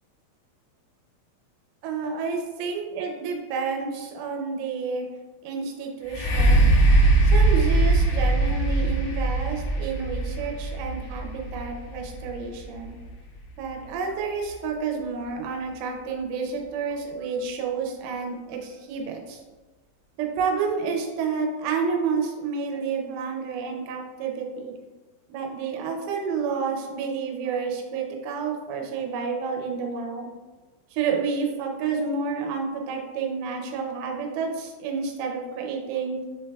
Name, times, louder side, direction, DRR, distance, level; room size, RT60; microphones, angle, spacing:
voice 1, 1.8-5.0 5.4-6.7 7.3-13.0 13.6-19.4 20.2-24.7 25.3-30.3 30.9-36.2, right 5 dB, 90° right, 2 dB, 3.1 m, -30 dB
sound 1, 6.1-13.8 14.5-14.6, right 2 dB, 85° left, 2.9 m, -21 dB
6.9 x 3.3 x 2.2 m, 1.3 s
omnidirectional pair, 5.5 m